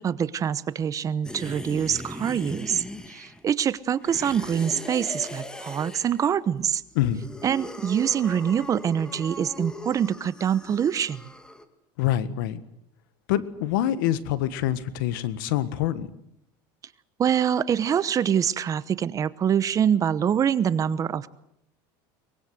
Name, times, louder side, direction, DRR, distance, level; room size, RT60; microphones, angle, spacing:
voice 1, 0.0-6.8 7.4-11.2 17.2-21.3, right 8 dB, 30° right, 17 dB, 0.9 m, -25 dB
sound 1, 1.2-3.5 4.0-6.3 6.9-11.6, left 1 dB, 5° left, 1.9 m, -39 dB
voice 2, 12.0-12.6 13.3-16.1, left 12 dB, 85° left, 15 dB, 1.6 m, -25 dB
23.0 x 21.0 x 7.9 m, 0.78 s
supercardioid pair, 125°, 11 cm